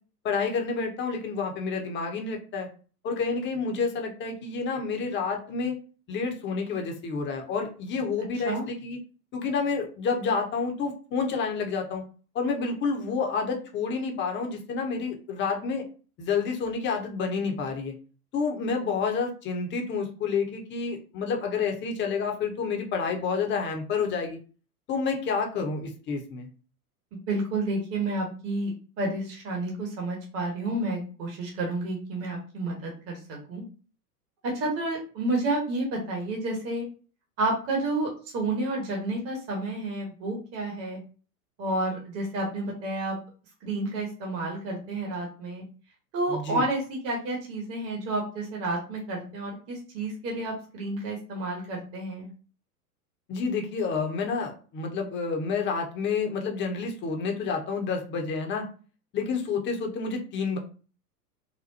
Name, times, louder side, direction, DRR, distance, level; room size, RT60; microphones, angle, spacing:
voice 1, 0.2-2.7 3.0-5.8 6.1-9.0 9.3-12.0 12.3-15.8 16.2-17.9 18.3-24.4 24.9-26.5 46.3-46.6 53.3-58.7 59.1-60.6, left 5 dB, 25° left, 3 dB, 0.8 m, -29 dB
voice 2, 27.1-33.6 34.4-36.8 37.4-41.0 41.6-43.2 43.6-45.6 46.1-52.3, right 2 dB, 30° right, -1 dB, 1.1 m, -30 dB
4.2 x 2.2 x 2.7 m, 0.38 s
figure-of-eight pair, 95°, 47 cm